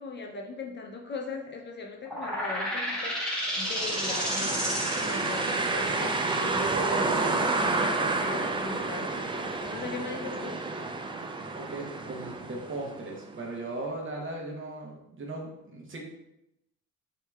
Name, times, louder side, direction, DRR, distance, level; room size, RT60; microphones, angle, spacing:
voice 1, 0.0-10.7, left 3 dB, 35° left, 1 dB, 0.5 m, -39 dB
sound 1, 2.0-9.4, equal, 5° left, 1.2 m, -33 dB
sound 2, 3.5-13.3, right 3 dB, 15° right, 0.3 m, -30 dB
voice 2, 11.5-16.0, right 2 dB, 40° right, 0 dB, 0.9 m, -38 dB
4.3 x 2.8 x 2.3 m, 0.84 s
cardioid pair, 90°, 30 cm